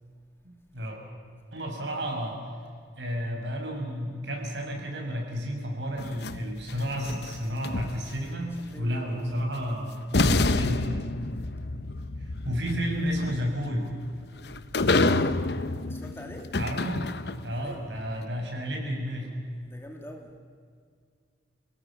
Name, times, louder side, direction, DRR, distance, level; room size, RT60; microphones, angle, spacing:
voice 1, 0.4-1.0 1.5-2.4 3.0-11.1 12.2-13.9 16.6-17.0 17.4-19.3, equal, 70° right, 1 dB, 5.9 m, -31 dB
sound 1, 6.0-8.4 9.6-9.7 10.1-17.6, left 2 dB, 60° left, 0.8 m, -28 dB
voice 2, 8.5-9.5 11.1-11.6 14.3-15.5 15.8-16.6 17.6-17.9 19.6-20.4, equal, 15° left, 2 dB, 2.2 m, -45 dB
29.5 x 17.5 x 7.3 m, 2.1 s
head